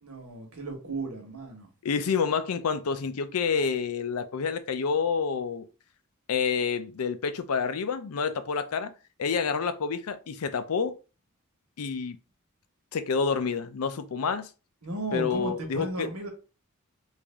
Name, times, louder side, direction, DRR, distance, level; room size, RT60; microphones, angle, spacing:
voice 1, 0.0-1.7 14.8-16.3, right 2 dB, 85° right, 1.3 m, -35 dB
voice 2, 1.8-5.7 6.3-8.9 9.2-10.9 11.8-12.2 12.9-14.5 15.1-16.1, left 5 dB, 85° left, 0.5 m, -28 dB
3.3 x 2.6 x 3.5 m
head